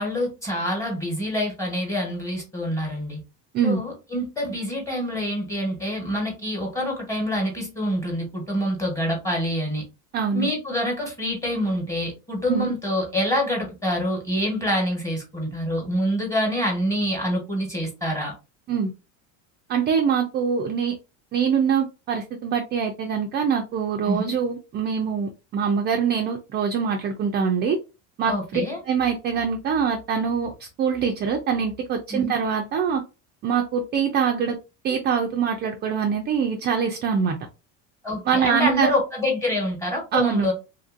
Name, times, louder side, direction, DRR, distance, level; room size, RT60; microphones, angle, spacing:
voice 1, 0.0-3.2 3.6-9.8 10.3-18.3 24.1-24.4 28.3-28.8 32.1-32.3 38.0-40.5, equal, 10° left, 1.2 m, -26 dB
voice 2, 10.1-10.5 12.5-12.7 18.7-18.9 19.7-20.9 21.3-27.8 28.2-28.6 28.9-33.0 33.4-34.6 34.8-37.4 38.3-38.9 40.1-40.5, right 6 dB, 30° right, 0.3 m, -24 dB
2.8 x 2.5 x 2.5 m
supercardioid pair, 120°, 36 cm